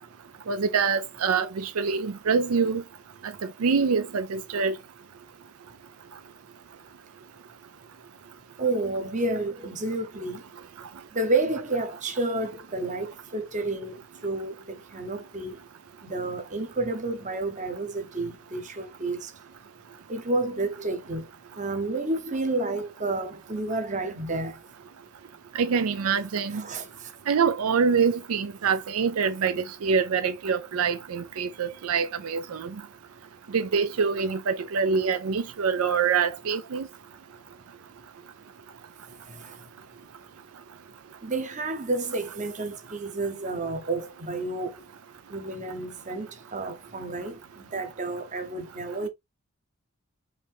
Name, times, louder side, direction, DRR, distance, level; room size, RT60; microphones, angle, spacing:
voice 1, 0.5-2.8 3.6-4.7 25.6-26.6 27.3-32.7 33.5-36.9, right 5 dB, 75° right, 0.5 m, -25 dB
voice 2, 8.6-10.5 11.1-15.6 16.0-19.3 20.1-21.2 21.6-24.6 26.5-27.1 39.3-39.5 41.2-44.8 45.3-49.1, right 2 dB, 35° right, 0.9 m, -30 dB
5.2 x 2.7 x 3.4 m
head